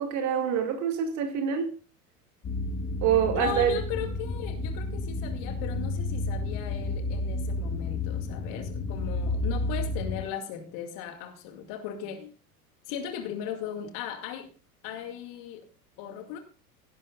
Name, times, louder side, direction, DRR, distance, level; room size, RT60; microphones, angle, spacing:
voice 1, 0.0-1.7 3.0-3.8, right 8 dB, 40° right, 2.3 m, -26 dB
sound 1, 2.4-10.2, left 2 dB, 30° left, 4.4 m, -31 dB
voice 2, 3.3-12.3 12.9-14.5 14.8-15.7 16.0-16.4, left 9 dB, 45° left, 2.3 m, -37 dB
17.0 x 11.0 x 2.5 m
figure-of-eight pair, 80°, 44 cm